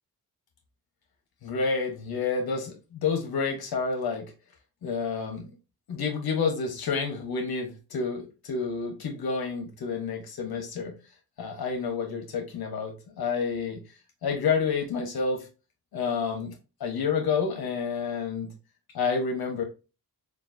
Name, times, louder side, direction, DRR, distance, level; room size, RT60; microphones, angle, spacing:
voice 1, 1.4-2.7 3.0-4.3 4.8-5.5 5.9-10.9 11.4-13.8 14.2-15.4 15.9-16.5 16.8-18.5 18.9-19.6, left 5 dB, 80° left, 4 dB, 1.1 m, -29 dB
6.8 x 2.5 x 2.6 m, 0.30 s
wide cardioid pair, 130°, 37 cm